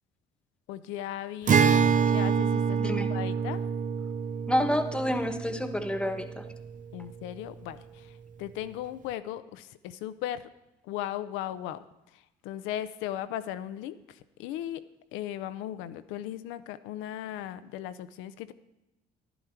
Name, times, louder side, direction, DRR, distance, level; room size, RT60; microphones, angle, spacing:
voice 1, 0.7-1.6 2.1-2.8 3.1-3.6 6.9-10.5 10.8-11.8 12.1-14.8 15.1-18.5, left 12 dB, 80° left, 13 dB, 0.6 m, -37 dB
Acoustic guitar, 1.5-6.9, right 6 dB, 40° right, 0.7 m, -26 dB
voice 2, 2.8-3.1 4.5-6.4, equal, 5° left, 7 dB, 1.2 m, -28 dB
11.0 x 11.0 x 4.5 m, 0.93 s
supercardioid pair, 65°, 20 cm